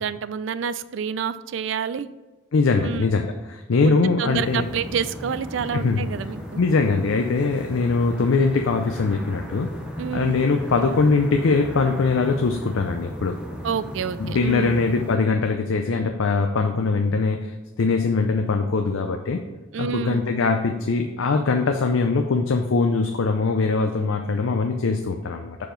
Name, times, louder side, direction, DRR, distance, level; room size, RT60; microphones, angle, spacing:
voice 1, 0.0-2.1 2.8-3.0 3.8-6.6 10.0-10.4 13.6-14.8 19.7-20.2, right 7 dB, 65° right, 14 dB, 0.3 m, -28 dB
voice 2, 2.5-4.6 5.7-6.0 6.6-9.7 10.1-13.4 14.2-17.5 17.8-19.4 19.8-25.6, left 4 dB, 85° left, 4 dB, 0.5 m, -22 dB
sound 1, 4.3-15.2, equal, 5° right, 0.6 m, -36 dB
6.7 x 4.8 x 3.8 m, 1.2 s
head